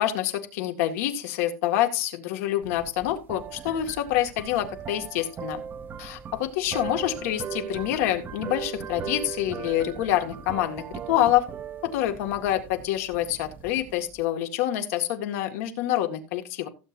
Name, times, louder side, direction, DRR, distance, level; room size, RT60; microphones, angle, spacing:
voice 1, 0.0-5.6 6.0-11.5 11.8-16.7, left 12 dB, 75° left, 6 dB, 2.0 m, -27 dB
sound 1, 2.6-14.2, right 7 dB, 25° right, 0.7 m, -39 dB
16.0 x 8.1 x 2.6 m, 0.30 s
supercardioid pair, 150°, 8 cm